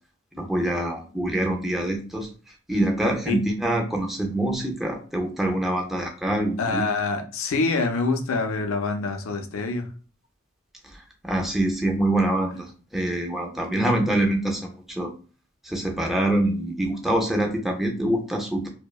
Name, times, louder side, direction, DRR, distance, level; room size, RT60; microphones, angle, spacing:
voice 1, 0.3-2.3 2.7-6.8 10.8-15.1 15.6-18.7, right 1 dB, ahead, 1 dB, 0.4 m, -25 dB
voice 2, 6.6-9.9, left 3 dB, 80° left, 6 dB, 0.4 m, -25 dB
2.7 x 2.1 x 2.2 m, 0.38 s
head